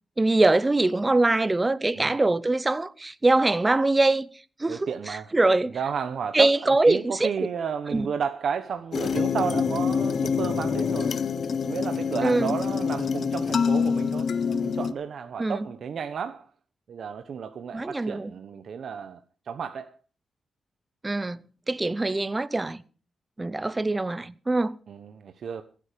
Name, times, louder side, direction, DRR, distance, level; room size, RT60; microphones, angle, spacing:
voice 1, 0.2-4.3 4.6-5.8 6.3-7.5 7.9-8.1 12.2-12.6 15.4-15.7 17.7-18.3 21.0-22.8 23.4-24.8, right 2 dB, 15° right, 0.6 m, -23 dB
voice 2, 4.7-5.3 5.7-11.2 11.7-16.5 16.9-19.9 24.9-25.6, right 7 dB, 60° right, 1.0 m, -32 dB
sound 1, 8.9-14.9, left 6 dB, 50° left, 1.0 m, -26 dB
26.0 x 8.8 x 5.1 m
wide cardioid pair, 175°, 0 cm